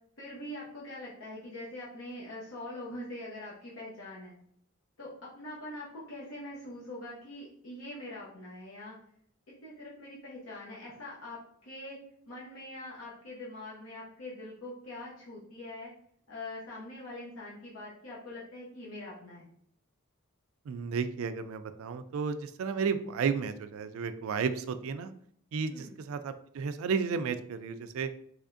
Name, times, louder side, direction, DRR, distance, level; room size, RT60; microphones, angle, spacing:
voice 1, 0.2-4.3 5.0-8.9 9.6-12.0 12.3-15.9 16.3-19.5 25.7-26.0, left 1 dB, 75° left, -6 dB, 0.8 m, -43 dB
voice 2, 20.7-25.1 25.5-28.1, right 5 dB, 85° right, 10 dB, 0.3 m, -33 dB
3.5 x 3.2 x 2.5 m, 0.65 s
head